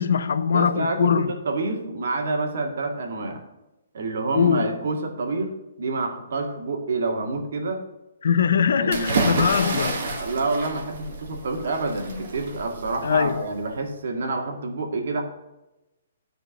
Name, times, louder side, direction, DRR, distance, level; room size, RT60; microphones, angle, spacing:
voice 1, 0.0-1.4 4.3-4.7 8.2-10.2 13.0-13.5, left 7 dB, 65° left, 0.7 m, -22 dB
voice 2, 0.5-3.4 3.9-5.5 5.8-7.8 8.8-9.2 10.2-15.2, right 3 dB, 60° right, 2.0 m, -28 dB
sound 1, 8.9-13.7, right 3 dB, 45° right, 1.8 m, -29 dB
10.5 x 5.1 x 6.3 m
hypercardioid pair, 175°, 0 cm